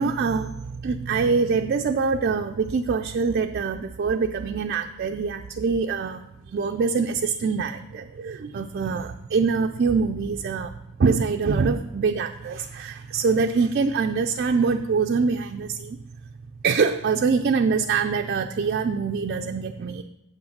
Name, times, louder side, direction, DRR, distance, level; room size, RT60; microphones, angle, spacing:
voice 1, 0.0-10.7 11.0-16.0 16.6-20.0, right 5 dB, 45° right, 5 dB, 0.3 m, -24 dB
7.8 x 6.3 x 5.9 m, 0.89 s
head